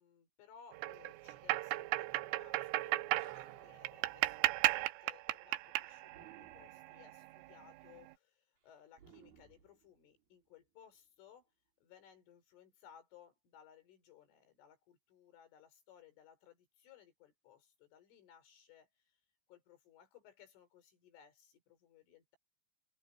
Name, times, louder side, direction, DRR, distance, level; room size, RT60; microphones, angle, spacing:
voice 1, 0.0-11.5 11.8-19.2 19.5-22.4, left 9 dB, 80° left, 6.9 m, -62 dB
sound 1, 0.7-7.5, right 18 dB, 90° right, 3.2 m, -36 dB
Animal, 2.8-2.9 3.1-3.9 6.1-6.9 8.9-10.3, right 7 dB, 50° right, 5.1 m, -60 dB
omnidirectional pair, 5.6 m